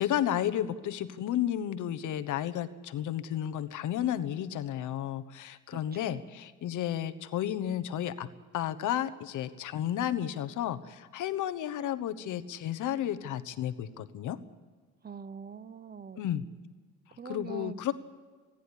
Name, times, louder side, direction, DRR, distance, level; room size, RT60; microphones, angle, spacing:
voice 1, 0.0-8.3 8.5-14.4 16.2-16.5 17.2-17.9, left 11 dB, 80° left, 12 dB, 1.2 m, -32 dB
voice 2, 5.7-6.2 15.0-16.2 17.2-17.8, right 6 dB, 30° right, 16 dB, 0.8 m, -44 dB
28.0 x 10.5 x 9.9 m, 1.4 s
cardioid pair, 90°, 30 cm